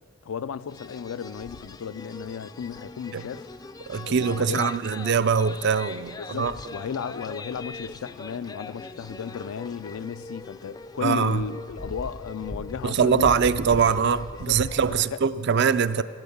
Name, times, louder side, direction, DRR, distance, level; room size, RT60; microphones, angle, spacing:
voice 1, 0.2-3.5 4.0-4.7 6.2-13.3 14.4-14.6 15.0-15.2 16.0-16.1, left 7 dB, 85° left, 0.4 m, -34 dB
sound 1, 0.7-15.1, left 2 dB, 20° left, 0.3 m, -40 dB
voice 2, 3.9-6.5 11.0-11.4 12.8-16.0, right 6 dB, 55° right, 0.4 m, -23 dB
14.5 x 12.0 x 7.1 m
head